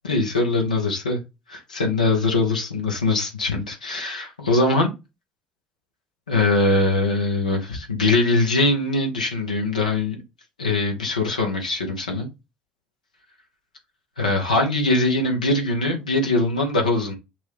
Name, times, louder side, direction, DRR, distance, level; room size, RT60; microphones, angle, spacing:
voice 1, 0.0-1.2 1.5-4.9 6.3-10.2 10.6-12.3 14.2-17.1, left 2 dB, 90° left, 1.1 m, -22 dB
6.1 x 2.6 x 3.1 m
hypercardioid pair, 55°, 4 cm